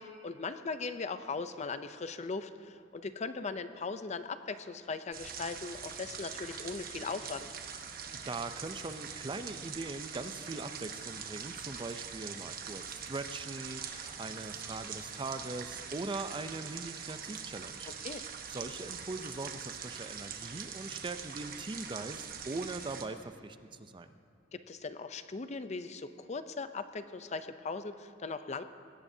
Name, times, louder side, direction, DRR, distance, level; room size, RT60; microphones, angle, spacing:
voice 1, 0.0-7.5 17.9-18.2 24.5-28.6, left 4 dB, 35° left, 11 dB, 0.5 m, -39 dB
sound 1, 5.1-23.0, right 6 dB, 50° right, 1.1 m, -43 dB
voice 2, 8.2-18.2 18.5-24.2, right 3 dB, 25° right, 9 dB, 0.5 m, -41 dB
21.0 x 17.0 x 2.7 m, 2.4 s
head